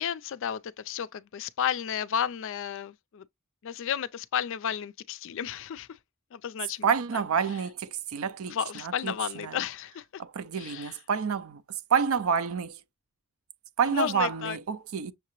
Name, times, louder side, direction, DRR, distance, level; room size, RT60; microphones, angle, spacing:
voice 1, 0.0-3.3 3.6-6.0 6.3-6.9 7.1-7.2 8.5-10.2 10.6-10.9 13.9-14.6, left 8 dB, 65° left, 0.4 m, -32 dB
voice 2, 6.8-9.6 10.2-11.6 11.9-12.8 13.8-15.1, right 6 dB, 85° right, 0.5 m, -28 dB
6.4 x 2.8 x 2.9 m
head